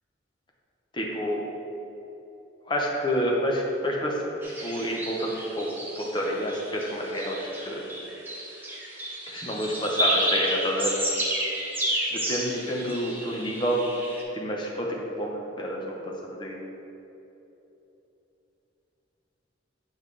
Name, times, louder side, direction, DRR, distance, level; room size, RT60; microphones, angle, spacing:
voice 1, 0.9-1.4 2.7-4.2 4.6-5.7 6.0-7.8 9.3-10.9 12.1-13.8 14.3-16.6, equal, 25° left, -1 dB, 0.8 m, -29 dB
sound 1, 4.4-14.2, right 1 dB, 10° right, 0.8 m, -31 dB
7.2 x 5.5 x 3.3 m, 3.0 s
head